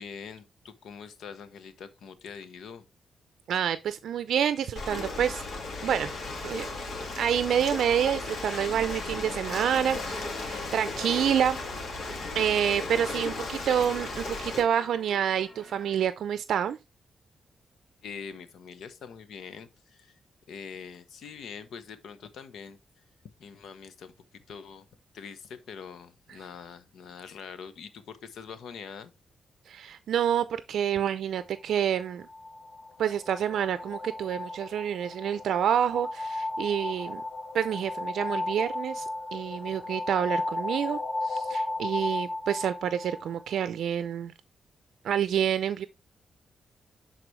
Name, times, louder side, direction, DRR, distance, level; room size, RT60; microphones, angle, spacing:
voice 1, 0.0-2.9 18.0-20.2 20.5-22.8 23.4-24.1 24.5-24.9 25.1-29.1 39.7-39.8, left 6 dB, 80° left, 1.0 m, -44 dB
voice 2, 3.5-5.4 5.8-6.1 6.4-6.7 7.2-11.6 12.3-16.8 29.7-32.2 33.0-37.2 37.5-39.1 39.3-44.3 45.0-45.9, right 9 dB, 80° right, 0.5 m, -28 dB
Ocean, 4.8-14.6, left 3 dB, 60° left, 2.1 m, -35 dB
sound 1, 9.2-16.1, equal, 10° left, 2.7 m, -49 dB
sound 2, 31.9-43.6, left 2 dB, 40° left, 1.0 m, -35 dB
11.0 x 4.2 x 3.2 m
cardioid pair, 110°, 0 cm